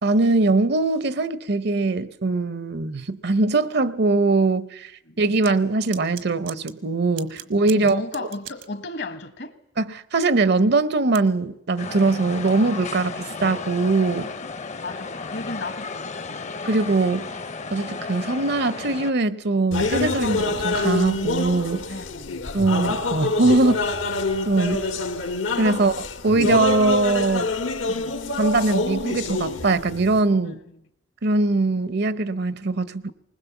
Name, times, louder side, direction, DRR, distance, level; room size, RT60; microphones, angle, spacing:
voice 1, 0.0-4.9 5.2-8.3 9.8-9.9 10.1-14.3 16.6-17.3 17.7-21.8 22.5-24.0 24.5-24.8 25.6-27.5 28.4-30.6 31.2-33.1, right 3 dB, 55° right, 0.7 m, -21 dB
sound 1, 5.4-5.5 5.9-6.7 7.2-8.7 11.1-11.2, right 11 dB, 80° right, 1.4 m, -37 dB
voice 2, 7.4-9.6 14.8-16.5 21.9-22.4 27.8-28.2 30.4-30.8, left 2 dB, 60° left, 1.3 m, -35 dB
sound 2, 11.8-19.1, left 4 dB, 35° left, 0.7 m, -34 dB
sound 3, 19.7-30.2, left 3 dB, 85° left, 1.7 m, -26 dB
20.5 x 20.0 x 7.1 m
head